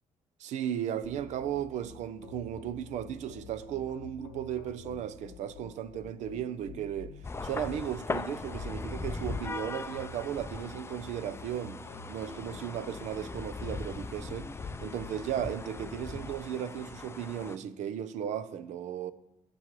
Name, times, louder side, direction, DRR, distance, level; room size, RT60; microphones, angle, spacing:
voice 1, 0.4-7.1 7.4-11.8 12.1-14.5 14.8-19.1, right 10 dB, 70° right, 0.7 m, -35 dB
sound 1, 1.0-16.3, left 5 dB, 90° left, 1.0 m, -49 dB
sound 2, 7.2-17.6, left 3 dB, 20° left, 0.5 m, -39 dB
17.0 x 6.9 x 3.1 m
supercardioid pair, 60°, 13 cm